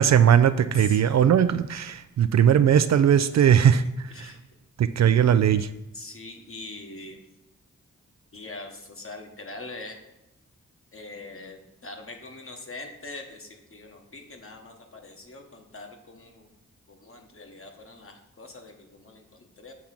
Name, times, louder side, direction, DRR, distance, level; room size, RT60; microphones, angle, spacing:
voice 1, 0.0-4.3 4.8-5.7, right 9 dB, 55° right, 12 dB, 0.4 m, -19 dB
voice 2, 0.7-1.2 3.3-3.5 4.1-4.4 5.9-7.2 8.3-10.0 10.9-16.5 16.9-19.7, left 2 dB, 40° left, 3 dB, 1.3 m, -43 dB
7.2 x 3.6 x 5.9 m, 0.94 s
supercardioid pair, 45°, 33 cm